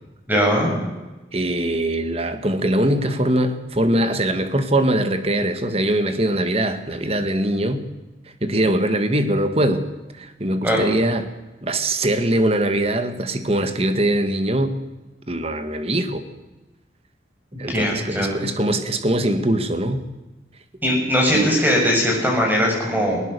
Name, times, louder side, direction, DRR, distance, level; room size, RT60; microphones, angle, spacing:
voice 1, 0.3-0.7 10.6-10.8 17.7-18.4 20.8-23.2, equal, 10° right, 0 dB, 6.6 m, -20 dB
voice 2, 1.3-7.9 8.4-9.8 10.2-11.3 11.6-14.8 15.3-16.2 17.6-20.1 21.3-21.6, right 1 dB, 35° right, 9 dB, 1.7 m, -22 dB
20.0 x 19.0 x 6.8 m, 1.1 s
head